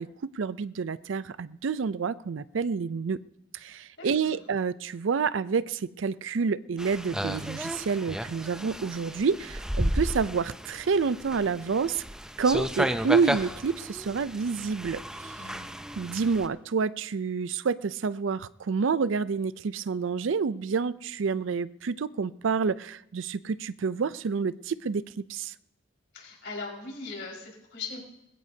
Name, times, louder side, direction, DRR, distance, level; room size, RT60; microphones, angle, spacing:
voice 1, 0.0-3.2 3.5-12.0 12.4-15.3 16.0-25.0 25.3-25.5, right 5 dB, 85° right, 17 dB, 0.5 m, -28 dB
voice 2, 4.0-4.4 15.4-15.8 26.1-28.0, left 4 dB, 60° left, -2 dB, 5.0 m, -40 dB
sound 1, 6.8-16.5, equal, 5° right, 0.5 m, -33 dB
20.5 x 16.0 x 2.8 m, 0.83 s
head